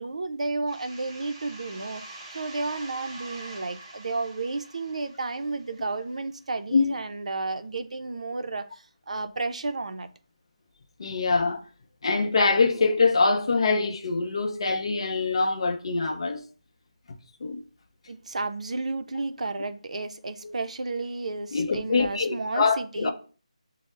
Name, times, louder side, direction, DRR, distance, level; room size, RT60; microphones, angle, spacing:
voice 1, 0.0-2.0 2.3-10.1 18.1-23.1, right 3 dB, 65° right, 0.4 m, -32 dB
sound 1, 0.7-6.2, right 2 dB, 25° right, 0.8 m, -45 dB
voice 2, 11.0-11.6 12.0-16.4 17.4-17.6 20.4-20.5 21.5-23.1, left 4 dB, 50° left, 0.5 m, -24 dB
5.2 x 2.0 x 3.1 m
figure-of-eight pair, 165°, 4 cm